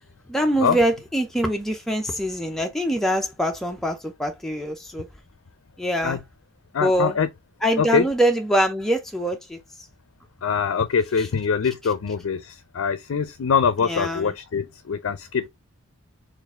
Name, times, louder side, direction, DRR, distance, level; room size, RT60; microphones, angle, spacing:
voice 1, 0.3-5.1 5.8-6.2 6.8-7.2 7.6-9.6 11.2-11.3 13.8-14.3, equal, ahead, 0.4 m, -24 dB
voice 2, 6.7-7.3 7.8-8.0 10.4-15.5, left 6 dB, 70° left, 0.4 m, -23 dB
4.5 x 2.4 x 3.4 m
head